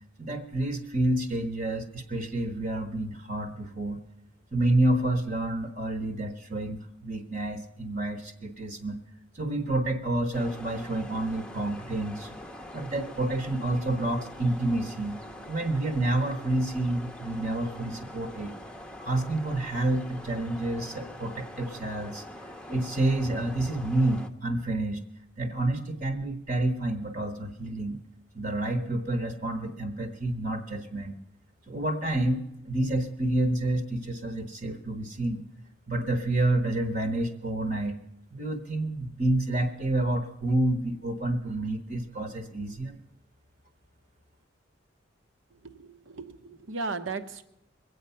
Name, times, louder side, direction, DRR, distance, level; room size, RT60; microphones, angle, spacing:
voice 1, 0.2-4.0 4.5-9.0 9.3-12.4 12.7-15.2 15.5-18.5 19.0-22.2 22.7-25.0 25.4-28.0 28.3-31.2 31.7-35.4 35.9-38.0 38.3-43.0, right 1 dB, 40° right, 6 dB, 1.0 m, -29 dB
sound 1, 10.3-24.3, left 1 dB, 5° left, 0.7 m, -44 dB
voice 2, 45.7-47.4, right 4 dB, 80° right, 11 dB, 0.9 m, -36 dB
22.0 x 8.0 x 5.6 m, 0.82 s
head